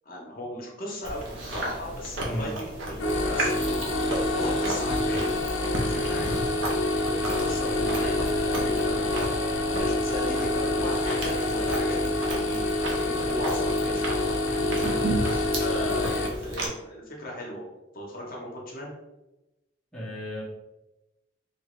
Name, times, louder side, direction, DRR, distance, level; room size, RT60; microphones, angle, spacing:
voice 1, 0.0-1.3 1.5-5.2 5.6-6.4 7.0-9.3 9.7-12.6 12.9-14.0 14.7-15.0 15.6-17.7 17.9-18.9, left 1 dB, 50° left, -3 dB, 0.8 m, -37 dB
Chewing mastication, 1.0-16.7, right 1 dB, 85° right, 0.8 m, -34 dB
voice 2, 2.3-2.6 15.7-16.2 19.9-20.4, left 1 dB, 5° left, -8 dB, 0.8 m, -35 dB
sound 1, 3.0-16.3, left 2 dB, 90° left, 0.5 m, -27 dB
Mallet percussion, 7.7-13.2 13.6-13.7, right 2 dB, 60° right, 0.5 m, -45 dB
2.9 x 2.6 x 3.1 m, 0.98 s
head